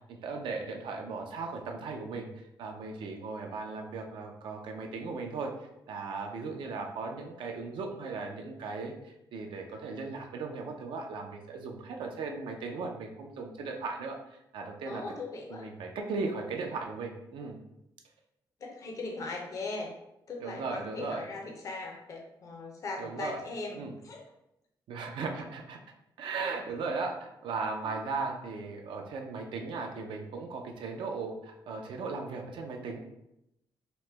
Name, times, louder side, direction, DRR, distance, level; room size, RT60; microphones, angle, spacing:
voice 1, 0.1-2.3 2.6-5.5 5.9-15.0 15.5-17.6 20.4-21.3 23.0-23.4 23.7-23.9 24.9-25.8 26.2-33.0, right 4 dB, 80° right, 2 dB, 0.4 m, -37 dB
voice 2, 14.9-15.7 18.6-19.9 20.3-24.2, left 3 dB, 40° left, 0 dB, 0.5 m, -39 dB
2.9 x 2.1 x 3.2 m, 0.84 s
cardioid pair, 145°, 8 cm